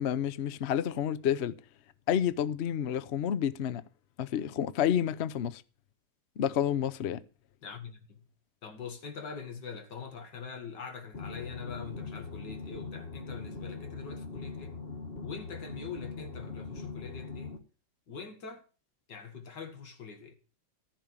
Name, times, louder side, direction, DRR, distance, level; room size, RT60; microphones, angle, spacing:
voice 1, 0.0-1.5 2.1-3.8 4.2-5.6 6.4-7.2, left 9 dB, 75° left, 0.6 m, -29 dB
voice 2, 7.6-8.3 8.6-14.8 15.2-17.6 18.1-18.6 19.1-20.3, left 6 dB, 60° left, 2.4 m, -43 dB
sound 1, 11.1-17.6, left 4 dB, 30° left, 1.4 m, -41 dB
14.5 x 5.4 x 8.7 m
omnidirectional pair, 2.2 m